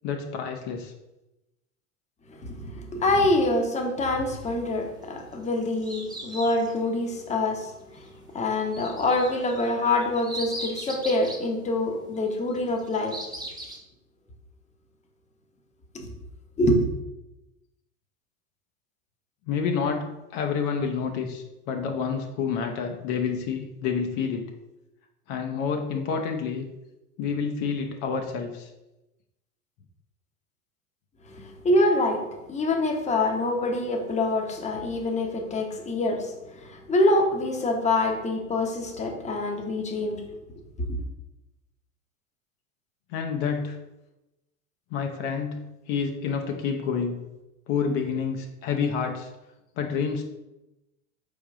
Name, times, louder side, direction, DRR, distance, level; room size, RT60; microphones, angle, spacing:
voice 1, 0.0-0.9 19.5-24.5 25.3-26.6 27.2-28.7 43.1-43.8 44.9-47.2 47.7-49.3 49.8-50.2, left 6 dB, 50° left, 3 dB, 0.7 m, -28 dB
voice 2, 2.4-8.1 8.3-13.2 15.9-16.1 16.6-16.9 31.3-32.2 32.5-40.2 40.9-41.0, left 2 dB, 15° left, 1 dB, 0.9 m, -25 dB
sound 1, 5.2-6.8 8.7-11.4 12.6-13.8, right 1 dB, 10° right, 1.0 m, -38 dB
4.4 x 3.4 x 3.6 m, 0.98 s
hypercardioid pair, 95°, 40 cm